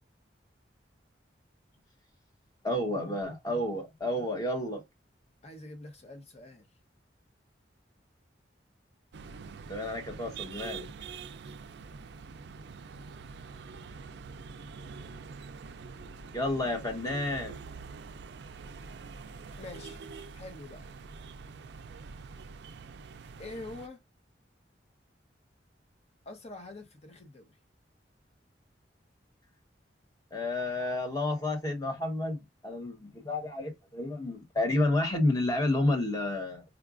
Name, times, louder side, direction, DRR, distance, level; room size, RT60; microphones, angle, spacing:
voice 1, 2.6-4.8 9.7-10.9 16.3-17.6 30.3-36.6, left 1 dB, 20° left, 1.2 m, -30 dB
voice 2, 5.4-6.7 19.6-20.0 20.3-20.9 23.4-24.0 26.2-27.6, left 2 dB, 35° left, 0.9 m, -45 dB
sound 1, 9.1-23.9, right 5 dB, 65° right, 0.4 m, -45 dB
4.9 x 2.3 x 2.4 m
head